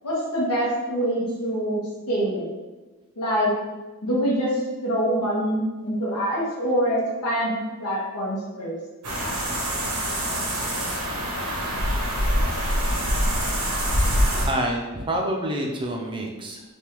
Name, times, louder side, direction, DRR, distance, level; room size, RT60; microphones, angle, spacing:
voice 1, 0.0-1.8 2.1-2.5 3.2-3.5 4.0-8.8 14.3-14.4, equal, 90° left, -5 dB, 0.9 m, -25 dB
sound 1, 9.0-14.5, equal, 85° right, 0.9 m, -24 dB
voice 2, 14.5-16.6, right 1 dB, 20° right, 0 dB, 0.4 m, -27 dB
3.4 x 2.3 x 3.0 m, 1.2 s
head